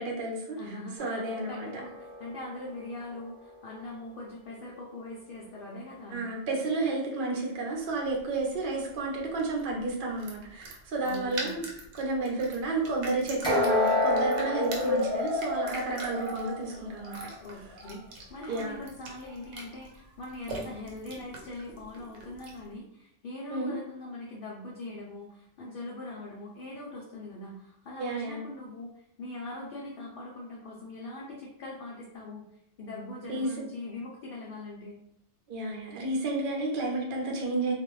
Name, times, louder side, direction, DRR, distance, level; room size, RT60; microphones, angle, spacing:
voice 1, 0.0-0.7 1.0-1.7 6.1-11.7 12.0-17.2 18.5-18.8 23.5-23.7 28.0-28.4 33.3-33.5 35.5-37.7, right 2 dB, 50° right, -1 dB, 0.7 m, -31 dB
voice 2, 0.6-1.2 1.5-6.3 11.0-11.6 17.4-32.5 32.8-35.0, left 2 dB, 60° left, -3 dB, 0.6 m, -42 dB
sound 1, 1.0-4.1 13.4-17.3 17.7-17.9 18.5-18.6, left 2 dB, 5° left, 0.7 m, -31 dB
sound 2, 7.9-22.7, right 2 dB, 80° right, 1.0 m, -44 dB
2.4 x 2.1 x 3.0 m, 0.73 s
omnidirectional pair, 1.2 m